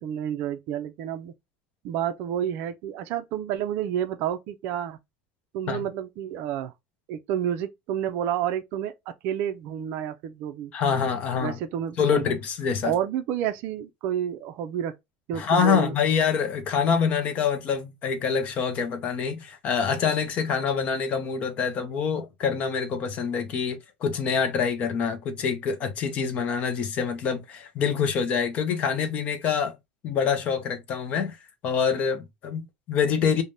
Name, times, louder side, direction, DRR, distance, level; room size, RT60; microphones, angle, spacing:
voice 1, 0.0-1.3 1.8-5.0 5.5-6.7 7.1-8.9 9.2-10.7 11.4-12.4 12.8-14.9 15.3-15.9, right 10 dB, 45° right, 0.4 m, -30 dB
voice 2, 10.7-11.6 12.0-12.9 15.3-29.7 30.0-31.4 31.6-33.4, left 6 dB, 30° left, 0.5 m, -26 dB
3.3 x 2.1 x 2.6 m
cardioid pair, 170°, 4 cm